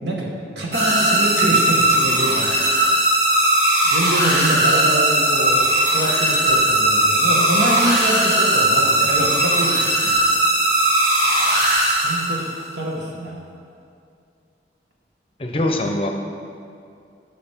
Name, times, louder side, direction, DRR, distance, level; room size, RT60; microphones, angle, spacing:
voice 1, 0.5-2.6 3.8-10.3 12.0-13.4, right 1 dB, 75° right, -2 dB, 1.6 m, -25 dB
sound 1, 0.7-12.6, right 1 dB, 60° right, 2.3 m, -18 dB
voice 2, 15.4-16.1, left 1 dB, 30° left, 3 dB, 0.7 m, -22 dB
11.5 x 6.3 x 3.6 m, 2.5 s
head